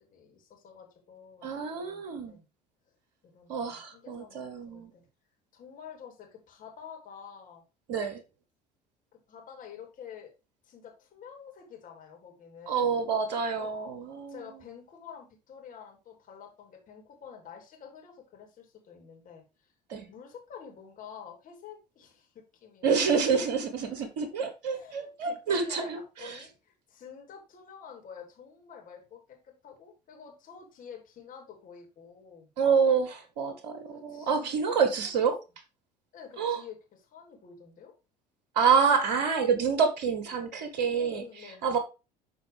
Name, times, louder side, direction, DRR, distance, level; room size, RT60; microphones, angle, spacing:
voice 1, 0.0-1.4 1.7-2.4 3.3-5.0 5.5-7.6 9.3-10.3 10.6-13.0 13.6-13.7 14.3-19.7 20.1-23.5 24.7-32.5 33.8-34.9 36.1-36.8 37.0-37.9 40.9-41.8, left 7 dB, 40° left, 3.2 m, -49 dB
voice 2, 1.4-2.4 3.5-4.9 7.9-8.2 12.7-14.4 19.9-20.1 22.8-26.4 32.6-35.4 36.4-36.6 38.5-41.8, right 6 dB, 55° right, 1.2 m, -27 dB
12.0 x 4.4 x 3.3 m
figure-of-eight pair, 60°, 21 cm